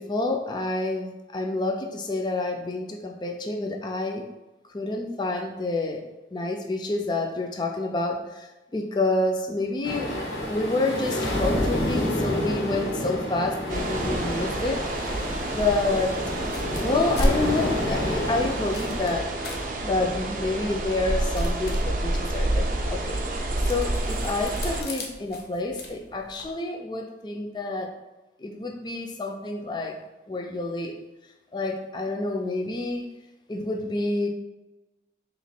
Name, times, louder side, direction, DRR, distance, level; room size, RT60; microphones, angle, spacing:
voice 1, 0.0-4.2 4.7-10.2 10.5-14.8 15.5-16.2 16.8-19.3 19.8-27.9 28.4-30.0 30.3-31.0 31.5-33.1 33.5-34.3, left 2 dB, 25° left, 2 dB, 0.4 m, -28 dB
sound 1, 9.8-19.2, left 1 dB, 90° left, 1.1 m, -29 dB
sound 2, 13.7-24.8, right 1 dB, 50° right, 0.5 m, -29 dB
sound 3, 16.4-26.5, left 1 dB, 65° left, 0.6 m, -36 dB
3.0 x 3.0 x 4.3 m, 1.1 s
head